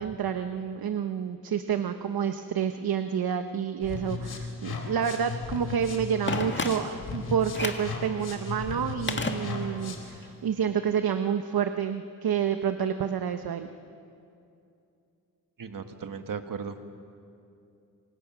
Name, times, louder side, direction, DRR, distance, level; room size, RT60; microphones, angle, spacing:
voice 1, 0.0-13.7, right 8 dB, 80° right, 8 dB, 0.9 m, -29 dB
sound 1, 3.8-10.2, left 4 dB, 85° left, 3.2 m, -36 dB
Telephone, 6.3-7.1 7.5-8.0 9.1-9.9 10.2-10.3, left 3 dB, 30° left, 1.9 m, -32 dB
voice 2, 15.6-16.9, right 6 dB, 60° right, 7 dB, 1.7 m, -36 dB
27.5 x 25.0 x 6.1 m, 2.6 s
wide cardioid pair, 95°, 36 cm